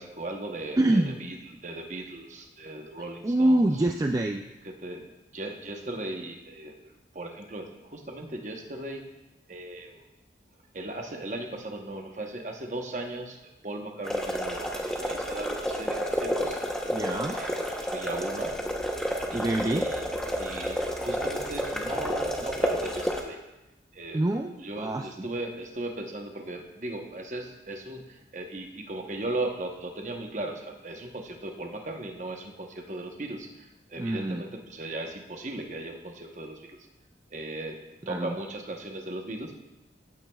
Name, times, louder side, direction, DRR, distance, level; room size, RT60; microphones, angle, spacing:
voice 1, 0.0-1.4 1.6-3.7 4.6-9.1 9.5-10.0 10.7-13.4 13.6-16.6 17.3-17.5 17.8-18.5 19.3-20.0 20.4-23.4 23.9-24.2 24.6-36.9 37.3-37.8 38.1-39.6, right 2 dB, 45° right, 3 dB, 1.0 m, -37 dB
voice 2, 0.8-1.2 3.2-4.4 16.9-17.4 19.3-19.9 24.1-25.3 34.0-34.4 38.1-38.4, right 1 dB, 20° right, 3 dB, 0.3 m, -26 dB
sound 1, 14.0-23.2, equal, 5° left, 0.8 m, -30 dB
15.0 x 9.2 x 2.3 m, 1.0 s
head